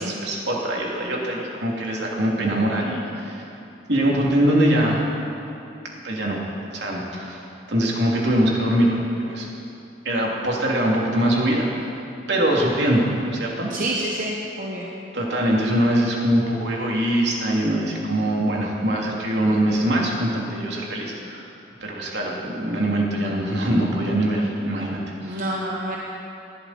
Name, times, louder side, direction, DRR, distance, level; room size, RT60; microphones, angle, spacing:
voice 1, 0.0-3.5 3.9-5.0 6.0-6.4 6.7-9.5 10.0-11.9 12.3-13.7 15.1-21.4 21.8-25.5, right 1 dB, 70° right, -2 dB, 2.9 m, -23 dB
voice 2, 13.7-14.9 25.2-26.0, right 1 dB, 45° right, -3 dB, 1.3 m, -28 dB
20.0 x 14.0 x 4.4 m, 2.8 s
head